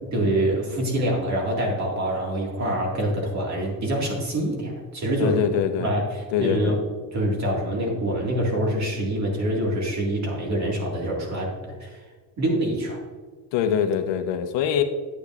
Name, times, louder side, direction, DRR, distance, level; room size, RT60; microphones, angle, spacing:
voice 1, 0.1-5.4 5.8-6.8 7.1-11.5 11.8-12.0 12.4-13.0, right 1 dB, 40° right, -1 dB, 1.9 m, -25 dB
voice 2, 5.2-5.9 6.3-6.8 13.5-14.8, left 8 dB, 85° left, 7 dB, 0.9 m, -23 dB
9.3 x 8.5 x 2.4 m, 1.5 s
cardioid pair, 160°, 43 cm